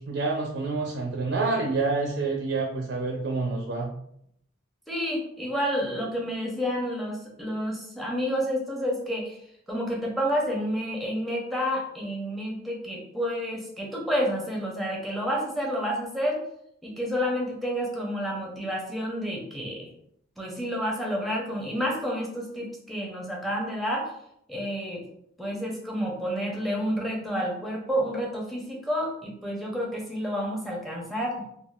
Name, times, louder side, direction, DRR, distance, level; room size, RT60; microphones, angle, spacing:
voice 1, 0.0-3.9, right 3 dB, 60° right, 0 dB, 0.4 m, -28 dB
voice 2, 4.9-9.4 9.7-16.4 16.8-19.9 20.4-24.1 24.5-25.0 25.4-31.4, equal, ahead, -2 dB, 0.6 m, -29 dB
3.5 x 2.3 x 2.3 m, 0.72 s
head